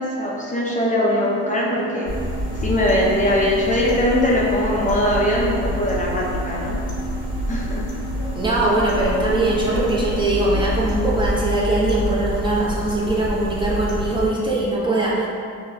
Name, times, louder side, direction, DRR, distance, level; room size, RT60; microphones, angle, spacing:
voice 1, 0.0-2.1 2.6-6.8 7.5-7.8 10.6-10.7, left 1 dB, 25° left, -5 dB, 0.6 m, -21 dB
sound 1, 1.1-11.4, right 5 dB, 55° right, 0.8 m, -35 dB
sound 2, 2.0-14.3, left 1 dB, 85° left, 1.2 m, -27 dB
voice 2, 8.3-15.3, right 2 dB, 15° right, -6 dB, 0.7 m, -21 dB
5.5 x 2.2 x 2.6 m, 2.4 s
cardioid pair, 90°, 30 cm